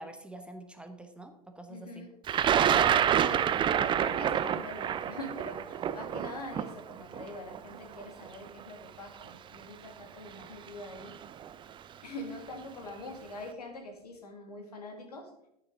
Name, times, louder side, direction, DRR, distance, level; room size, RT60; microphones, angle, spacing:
voice 1, 0.0-2.1, right 2 dB, 5° right, 5 dB, 1.1 m, -46 dB
voice 2, 1.7-2.1 2.6-3.0 3.7-11.2 12.0-15.3, left 2 dB, 80° left, 3 dB, 2.2 m, -44 dB
Thunder, 2.3-8.3 9.2-9.3 10.4-10.7 11.0-11.5, right 9 dB, 25° right, 0.5 m, -27 dB
10.5 x 9.2 x 3.8 m, 0.78 s
figure-of-eight pair, 85°, 20 cm